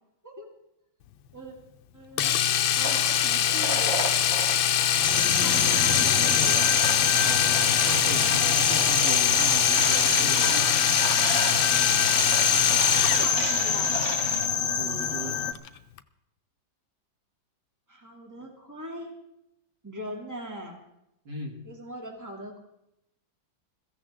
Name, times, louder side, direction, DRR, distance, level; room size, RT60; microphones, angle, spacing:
voice 1, 1.9-2.4 2.8-4.0 5.4-6.7 13.2-14.0 17.9-19.1 19.8-20.8 21.6-22.6, equal, 10° right, 0 dB, 2.6 m, -40 dB
Domestic sounds home sounds, 2.2-13.4 15.5-15.7 16.0-16.1, left 10 dB, 90° left, 1.5 m, -24 dB
sound 1, 2.8-14.4, right 2 dB, 45° right, 3.0 m, -33 dB
sound 2, 5.0-15.5, left 6 dB, 45° left, 1.1 m, -26 dB
voice 2, 5.1-6.1 7.1-10.7 14.8-15.4 21.3-21.6, right 1 dB, 65° right, -1 dB, 3.5 m, -37 dB
22.0 x 15.5 x 3.7 m, 0.82 s
omnidirectional pair, 2.1 m